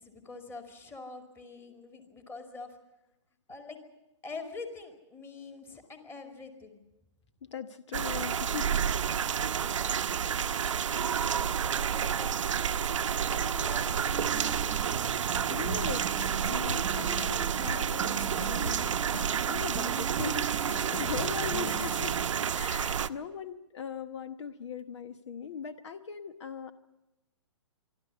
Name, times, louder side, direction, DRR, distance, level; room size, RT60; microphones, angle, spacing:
voice 1, 0.0-2.8 3.5-3.8 4.2-6.8 9.3-10.2 11.6-12.4 13.2-14.6 21.0-21.4, left 3 dB, 15° left, 6 dB, 2.3 m, -45 dB
voice 2, 7.5-8.7 15.5-16.1 16.5-22.2 22.5-26.7, left 7 dB, 65° left, 12 dB, 1.1 m, -40 dB
sound 1, 7.9-23.1, right 8 dB, 80° right, 0.8 m, -30 dB
sound 2, 14.1-22.3, right 15 dB, 25° right, 0.6 m, -41 dB
sound 3, 15.7-19.5 20.2-22.1, equal, 90° left, 3.6 m, -39 dB
25.0 x 12.5 x 9.6 m, 0.96 s
hypercardioid pair, 140°, 16 cm